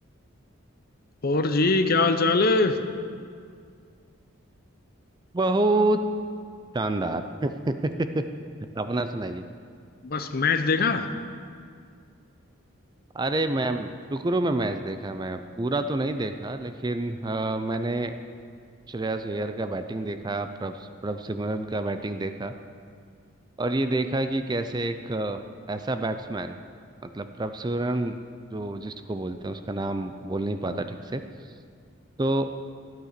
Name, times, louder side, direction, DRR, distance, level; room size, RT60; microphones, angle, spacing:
voice 1, 1.2-2.8 10.0-11.1, left 3 dB, 45° left, 9 dB, 0.7 m, -22 dB
voice 2, 5.3-6.0 6.7-8.2 8.7-9.4 13.1-18.2 18.9-22.5 23.6-25.4 25.7-26.6 27.0-28.1 28.5-31.2 32.2-32.5, right 2 dB, 20° right, 9 dB, 0.4 m, -28 dB
12.5 x 9.2 x 6.7 m, 2.2 s
head